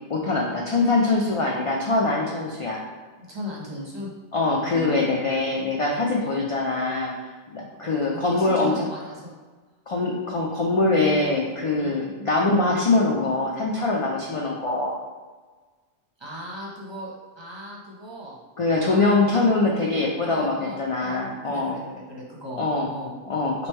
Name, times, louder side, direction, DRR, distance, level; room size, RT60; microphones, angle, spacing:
voice 1, 0.1-2.8 4.3-7.1 7.5-8.9 9.9-15.0 18.6-21.8 22.6-22.9 23.3-23.7, left 3 dB, 60° left, -2 dB, 0.3 m, -23 dB
voice 2, 3.3-4.1 4.6-5.3 6.2-6.5 7.8-9.3 11.8-12.1 16.2-18.4 18.8-23.1, left 1 dB, 30° right, -5 dB, 0.7 m, -38 dB
3.1 x 2.7 x 4.4 m, 1.3 s
omnidirectional pair, 1.1 m